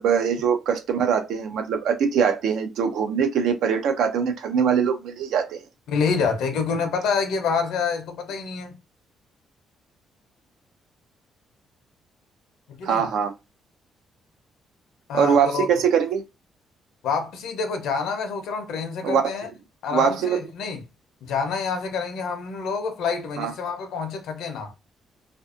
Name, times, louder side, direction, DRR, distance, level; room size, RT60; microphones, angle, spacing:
voice 1, 0.0-5.6 12.8-13.3 15.1-16.2 19.0-19.2 19.9-20.4 23.4-23.5, right 7 dB, 80° right, 0.5 m, -22 dB
voice 2, 5.9-8.7 12.7-13.1 15.1-15.7 17.0-19.5 19.8-20.8 21.2-24.7, left 5 dB, 80° left, 0.7 m, -27 dB
2.5 x 2.4 x 2.4 m
cardioid pair, 90°, 0 cm